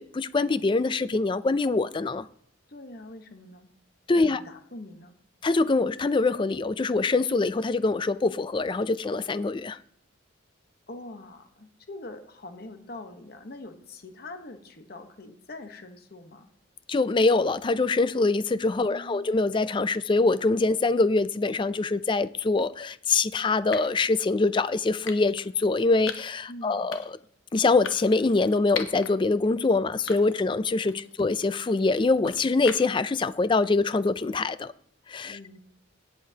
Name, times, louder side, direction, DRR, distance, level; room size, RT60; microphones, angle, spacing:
voice 1, 0.0-2.3 4.1-4.4 5.4-9.8 16.9-27.0 27.5-34.7 35.1-35.4, left 3 dB, 25° left, 0.3 m, -24 dB
voice 2, 2.7-3.7 4.1-5.2 10.9-16.5 18.8-19.4 26.5-27.0 30.9-31.1 35.3-35.6, left 2 dB, 50° left, 1.0 m, -44 dB
sound 1, 22.4-22.6 23.7-24.0 25.1-25.5 26.1-26.4 26.9-27.3 27.8-29.1 29.5-29.6 30.1-30.5 30.9-33.1, left 7 dB, 80° left, 1.0 m, -39 dB
17.0 x 7.7 x 2.8 m
head